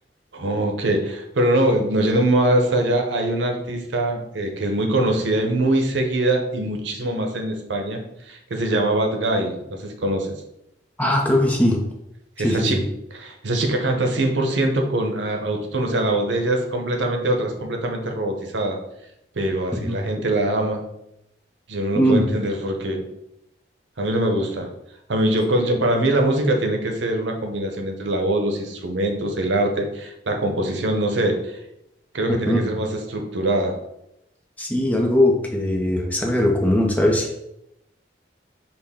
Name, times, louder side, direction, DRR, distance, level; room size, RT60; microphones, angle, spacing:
voice 1, 0.3-8.0 8.3-10.3 12.4-12.8 13.1-18.8 19.4-20.8 21.7-23.0 24.0-24.7 25.1-31.6 32.1-33.8, right 1 dB, 85° right, 3 dB, 0.7 m, -23 dB
voice 2, 11.0-11.8 12.4-12.8 19.8-20.0 22.0-22.2 25.5-25.6 32.5-32.8 34.6-37.4, left 1 dB, 10° left, 0 dB, 0.6 m, -20 dB
5.9 x 2.1 x 3.5 m, 0.83 s
head